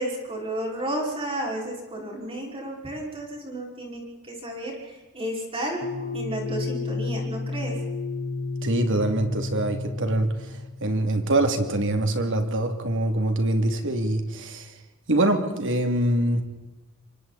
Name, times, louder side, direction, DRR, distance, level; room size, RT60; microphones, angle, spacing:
voice 1, 0.0-5.8 6.1-7.8, right 1 dB, 25° right, -1 dB, 5.4 m, -32 dB
sound 1, 5.8-11.0, left 3 dB, 45° left, 1.0 m, -32 dB
voice 2, 8.6-14.7 15.1-16.4, right 1 dB, 60° right, 6 dB, 2.8 m, -24 dB
27.0 x 24.0 x 4.2 m, 1.2 s
head